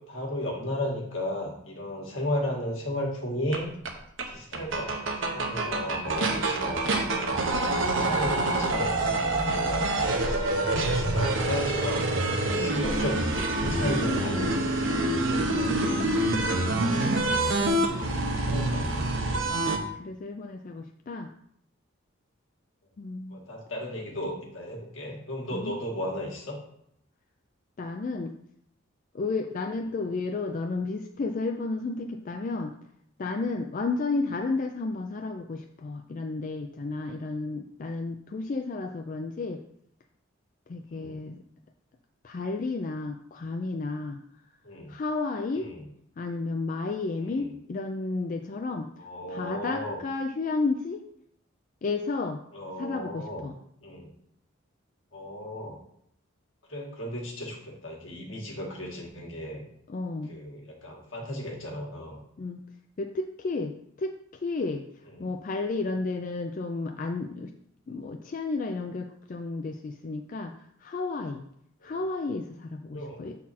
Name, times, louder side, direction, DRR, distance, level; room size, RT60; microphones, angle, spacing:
voice 1, 0.0-3.7 4.3-7.3 8.0-8.9 9.4-9.9 10.6-12.1 12.4-15.0 15.3-15.7 17.2-19.3 23.3-26.6 40.9-41.2 44.6-44.9 45.5-45.9 47.2-47.5 49.0-50.0 52.5-53.4 53.8-54.1 55.1-55.8 56.7-59.6 60.3-62.2 65.1-65.3 71.8-72.0 72.9-73.2, left 1 dB, 70° left, -1 dB, 1.7 m, -35 dB
sound 1, 3.5-3.6 3.9-4.0 4.2-4.3 4.5-19.8, right 2 dB, 65° right, 0.9 m, -26 dB
voice 2, 15.5-16.2 20.0-21.3 23.0-23.4 25.5-25.8 27.8-28.3 29.1-32.7 33.2-39.6 40.7-41.4 42.2-44.2 44.9-45.7 46.2-48.9 49.3-51.0 51.8-52.4 52.8-53.5 59.9-60.3 62.4-62.6 63.0-64.1 64.4-64.8 65.2-67.5 67.9-70.5 70.8-71.4 71.8-73.4, left 3 dB, 40° left, 5 dB, 0.3 m, -32 dB
7.4 x 4.1 x 4.2 m, 0.73 s
head